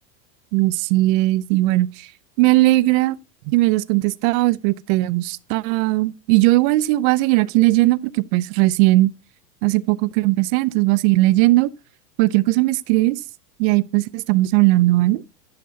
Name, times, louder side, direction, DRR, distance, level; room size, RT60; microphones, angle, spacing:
voice 1, 0.5-2.1 2.4-3.2 3.5-8.0 8.3-9.1 9.6-11.7 12.2-13.2 13.6-15.2, right 19 dB, 50° right, 0.6 m, -18 dB
11.0 x 8.6 x 2.8 m
hypercardioid pair, 110°, 50 cm